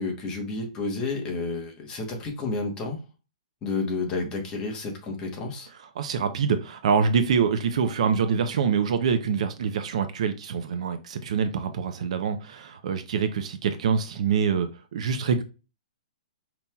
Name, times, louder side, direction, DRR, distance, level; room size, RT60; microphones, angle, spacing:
voice 1, 0.0-3.0 3.6-5.7, left 3 dB, 20° left, 1 dB, 1.0 m, -30 dB
voice 2, 6.0-15.4, right 6 dB, 55° right, 9 dB, 0.6 m, -25 dB
5.3 x 2.9 x 2.2 m, 0.32 s
hypercardioid pair, 160°, 4 cm